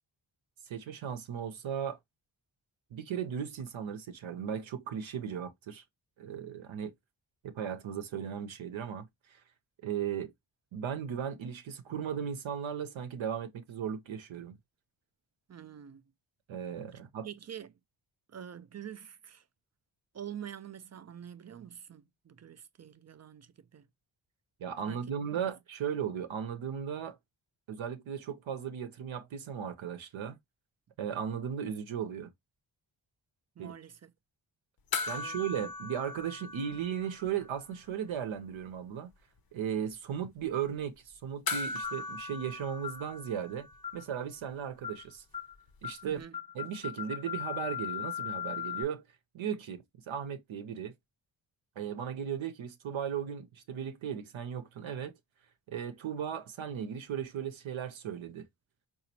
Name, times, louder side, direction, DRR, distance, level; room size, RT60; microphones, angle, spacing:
voice 1, 0.6-2.0 2.9-5.8 6.2-6.9 7.4-9.4 9.8-10.3 10.7-14.6 16.5-17.3 24.6-27.2 27.7-30.4 31.0-32.3 33.6-33.7 35.1-39.1 39.5-43.7 43.9-45.2 45.8-46.2 46.5-49.0 49.3-50.9 51.8-55.1 55.7-58.4, right 8 dB, 75° right, 0.7 m, -36 dB
voice 2, 15.5-16.0 17.2-17.7 18.3-19.4 20.1-23.9 24.9-25.5 33.6-34.1 35.2-35.4 46.0-46.4, right 9 dB, 35° right, 0.4 m, -46 dB
sound 1, 34.9-37.6 37.8-37.9 41.5-44.1 46.2-46.3, left 3 dB, 50° left, 0.7 m, -39 dB
sound 2, 41.8-42.1 42.8-43.0 43.8-44.1 44.8-45.0 45.3-45.5 45.8-46.0 46.3-48.8, left 10 dB, 10° left, 0.6 m, -38 dB
4.0 x 2.5 x 2.7 m
cardioid pair, 60°, 48 cm